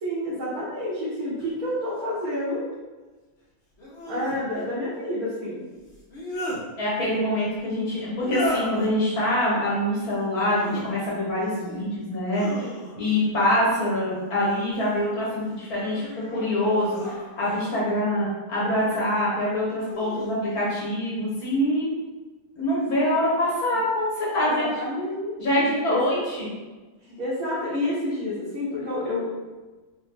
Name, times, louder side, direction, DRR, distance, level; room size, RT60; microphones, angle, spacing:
voice 1, 0.0-2.6 4.1-5.6 24.4-26.0 27.2-29.3, left 1 dB, 75° right, -10 dB, 1.5 m, -29 dB
sound 1, 1.4-1.5 3.8-4.4 5.9-6.6 8.1-8.9 10.4-10.8 11.3-11.9 12.3-13.2 14.4-15.0 15.6-17.7 18.7-19.2 19.8-20.3, left 1 dB, 50° left, 1.1 m, -35 dB
voice 2, 6.8-12.5 13.0-21.8 22.6-24.7 25.4-26.5, left 1 dB, 75° left, -7 dB, 1.6 m, -25 dB
4.1 x 2.2 x 3.2 m, 1.3 s
omnidirectional pair, 1.6 m